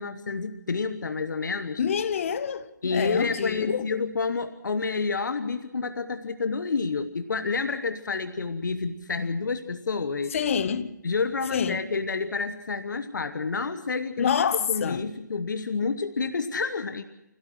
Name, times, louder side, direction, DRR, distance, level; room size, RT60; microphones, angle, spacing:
voice 1, 0.0-1.8 2.8-10.4 11.0-17.0, left 4 dB, 75° left, 1.3 m, -29 dB
voice 2, 1.8-3.9 10.3-10.9 11.5-11.8 14.2-15.1, left 7 dB, 45° left, 1.3 m, -27 dB
26.0 x 17.0 x 6.2 m
hypercardioid pair, 155°, 10 cm